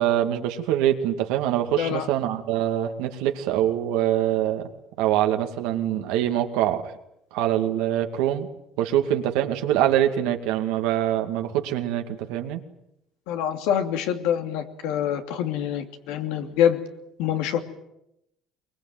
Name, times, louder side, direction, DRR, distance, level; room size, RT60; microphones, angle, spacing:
voice 1, 0.0-4.7 5.0-7.0 7.3-8.5 8.8-12.6, right 11 dB, 90° right, 5 dB, 2.3 m, -24 dB
voice 2, 1.7-2.1 13.3-16.8 17.2-17.6, left 9 dB, 90° left, 6 dB, 2.7 m, -25 dB
23.0 x 22.0 x 9.3 m, 0.84 s
cardioid pair, 110°, 0 cm